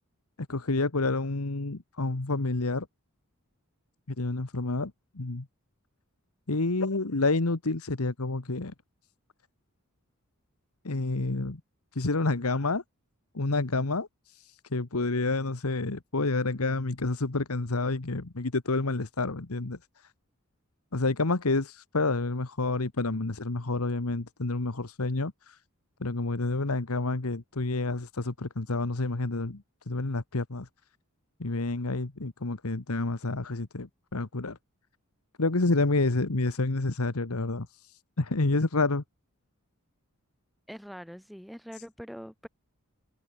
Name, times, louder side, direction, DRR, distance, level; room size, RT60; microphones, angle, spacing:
voice 1, 0.5-2.9 4.2-5.5 6.5-8.7 10.8-11.6 11.9-12.8 13.3-19.8 20.9-25.6 26.0-30.7 31.4-34.6 35.4-39.0, left 3 dB, 85° left, 1.4 m, -29 dB
voice 2, 40.7-42.5, equal, ahead, 3.0 m, -43 dB
head